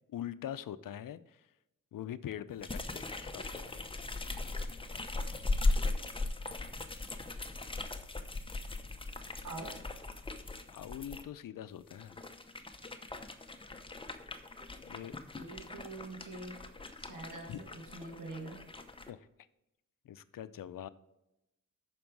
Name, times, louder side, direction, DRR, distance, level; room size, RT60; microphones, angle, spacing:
voice 1, 0.1-1.5 1.9-3.8 10.7-12.2 14.8-15.1 17.5-17.6 19.1-19.3 20.0-20.9, left 10 dB, 80° left, 15 dB, 0.6 m, -43 dB
sound 1, 2.6-11.2 11.8-19.1, left 2 dB, 15° left, 0.8 m, -38 dB
voice 2, 9.4-9.8 15.4-16.6 17.0-18.6, right 2 dB, 65° right, 1 dB, 1.8 m, -45 dB
9.0 x 6.0 x 4.7 m, 0.90 s
wide cardioid pair, 100°, 33 cm